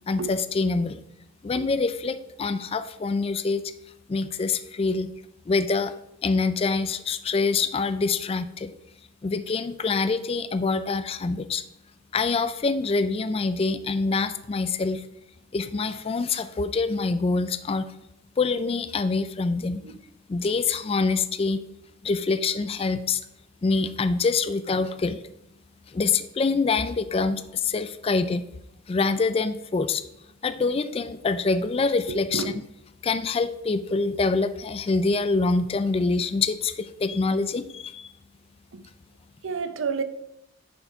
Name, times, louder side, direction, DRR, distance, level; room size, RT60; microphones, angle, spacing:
voice 1, 0.1-1.0 1.4-3.6 4.1-5.1 5.5-5.9 6.2-8.7 9.2-11.6 12.1-15.0 15.5-17.8 18.4-19.8 20.3-21.6 22.0-23.2 23.6-25.2 25.9-28.4 28.9-30.0 30.4-32.5 33.0-38.1, left 4 dB, 30° left, 12 dB, 0.3 m, -25 dB
voice 2, 32.1-32.6 38.7-38.8 39.4-40.0, right 5 dB, 85° right, 11 dB, 0.7 m, -30 dB
9.2 x 4.6 x 4.5 m, 0.81 s
head